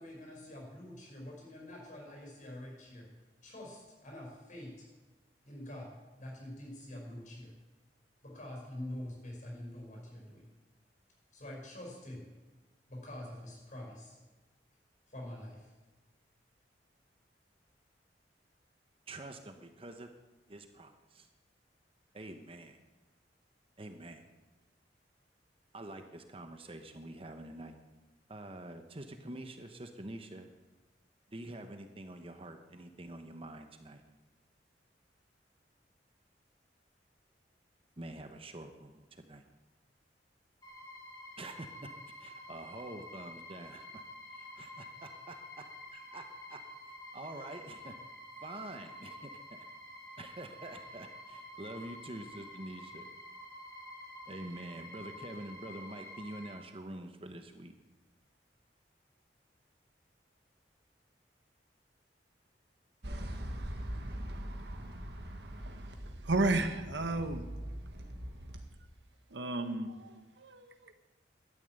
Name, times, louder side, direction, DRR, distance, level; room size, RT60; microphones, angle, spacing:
voice 1, 0.0-3.1 3.4-4.9 5.4-5.9 6.2-7.5 8.2-10.5 11.3-12.3 12.9-14.2 15.1-15.7, left 1 dB, 45° left, -1 dB, 6.0 m, -46 dB
voice 2, 19.1-20.1 20.5-21.3 22.1-22.8 23.8-24.3 25.7-27.8 28.3-30.5 31.3-34.0 38.0-39.4 41.4-41.9 42.2-44.0 44.3-46.6 47.1-47.9 48.4-49.3 50.2-53.1 54.3-57.7, right 1 dB, 30° right, 7 dB, 1.0 m, -46 dB
sound 1, 40.6-56.6, left 1 dB, 20° left, 2.8 m, -49 dB
sound 2, 63.0-68.6, equal, 65° right, 1.8 m, -42 dB
voice 3, 66.2-67.4 69.3-70.9, right 2 dB, 85° right, 9 dB, 1.3 m, -33 dB
13.0 x 10.0 x 9.2 m, 1.2 s
head